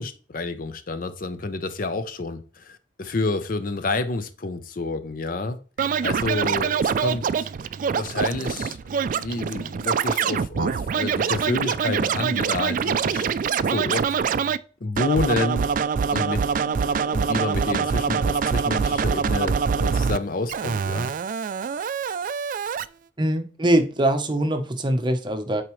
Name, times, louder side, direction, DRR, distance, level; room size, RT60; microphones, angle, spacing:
voice 1, 0.0-7.5 7.9-13.3 13.7-14.1 14.8-15.7 16.1-21.1, left 3 dB, 50° left, 0.6 m, -29 dB
Scratching (performance technique), 5.8-14.6 15.0-20.2 20.5-22.8, right 6 dB, 45° right, 0.3 m, -24 dB
voice 2, 23.2-25.6, right 1 dB, 25° right, 0.9 m, -22 dB
8.9 x 4.7 x 3.1 m
head